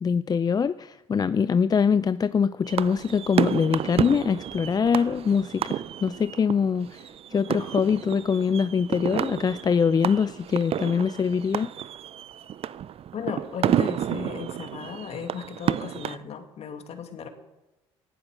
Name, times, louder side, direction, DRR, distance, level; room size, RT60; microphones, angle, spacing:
voice 1, 0.0-7.0 7.3-11.7, left 6 dB, 30° left, 15 dB, 0.5 m, -23 dB
sound 1, 2.7-16.2, right 10 dB, 50° right, 0.5 m, -31 dB
voice 2, 13.1-17.3, left 7 dB, 55° left, 6 dB, 2.4 m, -36 dB
19.0 x 11.0 x 6.6 m, 1.0 s
supercardioid pair, 65°, 13 cm